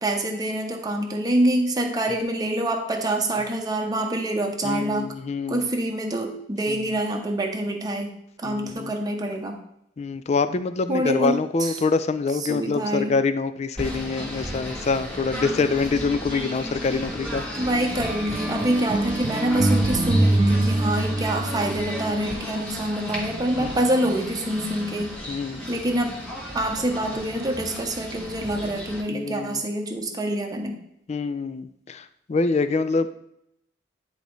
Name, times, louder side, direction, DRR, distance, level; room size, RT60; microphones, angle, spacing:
voice 1, 0.0-5.1 5.5-8.1 8.4-9.6 10.9-11.8 12.4-13.2 17.6-25.1 25.7-26.2 26.5-30.8, right 1 dB, 20° right, 2 dB, 0.7 m, -26 dB
voice 2, 4.6-5.7 6.7-6.8 8.4-8.9 10.0-17.4 23.6-23.7 25.3-25.6 29.1-29.6 31.1-33.1, left 4 dB, 40° left, 12 dB, 0.4 m, -25 dB
Singing / Bird, 13.8-29.0, equal, 5° left, 1.5 m, -34 dB
sound 1, 18.0-22.1, right 1 dB, 40° right, 1.0 m, -24 dB
9.9 x 4.0 x 3.1 m, 0.77 s
head